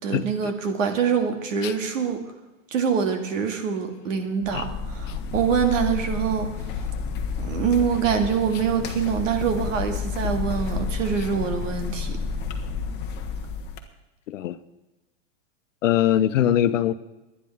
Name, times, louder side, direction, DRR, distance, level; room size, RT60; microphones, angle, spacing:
voice 1, 0.0-2.2 2.7-6.5 7.4-12.2, right 7 dB, 85° right, 5 dB, 2.3 m, -25 dB
sound 1, 4.4-13.8, left 5 dB, 25° left, 1.3 m, -30 dB
voice 2, 15.8-16.9, left 11 dB, 80° left, 13 dB, 1.0 m, -21 dB
22.5 x 10.0 x 3.6 m, 1.0 s
supercardioid pair, 150°, 38 cm